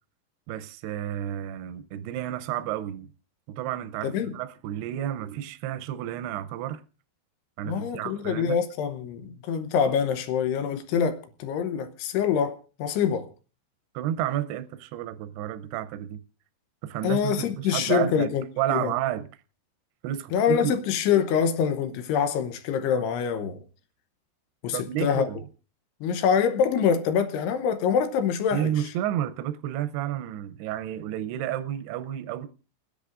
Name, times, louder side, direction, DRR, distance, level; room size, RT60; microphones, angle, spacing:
voice 1, 0.5-3.1 3.6-6.8 7.6-8.6 13.9-16.2 16.8-18.3 18.6-19.3 20.0-20.8 24.7-25.4 28.5-32.5, right 12 dB, 80° right, 2.5 m, -31 dB
voice 2, 4.0-4.3 7.7-13.3 17.0-18.4 18.7-18.9 20.3-23.6 24.6-25.3 26.0-28.9, left 7 dB, 75° left, 2.7 m, -25 dB
30.0 x 10.5 x 2.5 m
omnidirectional pair, 5.2 m